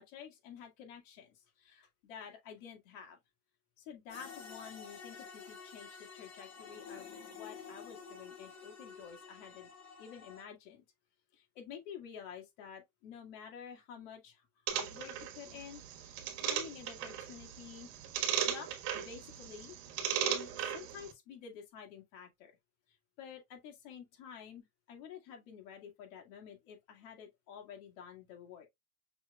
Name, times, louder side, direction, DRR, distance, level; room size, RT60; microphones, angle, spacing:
voice 1, 0.0-3.2 3.8-9.7 10.0-10.8 11.3-14.4 14.7-16.2 16.4-17.9 18.4-19.8 20.2-22.5 23.2-28.7, left 8 dB, 70° left, 2.0 m, -50 dB
sound 1, 4.1-10.4, left 6 dB, 40° left, 1.9 m, -50 dB
sound 2, 14.7-21.1, right 9 dB, 70° right, 1.4 m, -37 dB
6.0 x 3.3 x 2.3 m
supercardioid pair, 135°, 38 cm